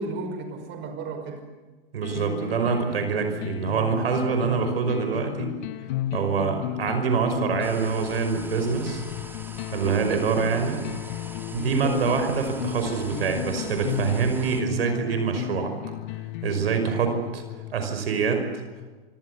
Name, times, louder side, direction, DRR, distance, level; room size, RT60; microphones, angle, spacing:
voice 1, 0.0-1.4 9.8-10.2 11.7-12.1, right 3 dB, 35° right, 6 dB, 5.4 m, -34 dB
voice 2, 1.9-5.5 6.1-9.0 9.7-10.8 11.5-15.7 16.4-17.4 17.7-18.5, right 6 dB, 70° right, 6 dB, 5.5 m, -25 dB
sound 1, 2.0-18.0, left 15 dB, 50° left, 1.0 m, -34 dB
sound 2, 7.6-14.6, right 2 dB, 5° right, 2.8 m, -43 dB
27.0 x 26.0 x 7.1 m, 1.3 s
hypercardioid pair, 105°, 31 cm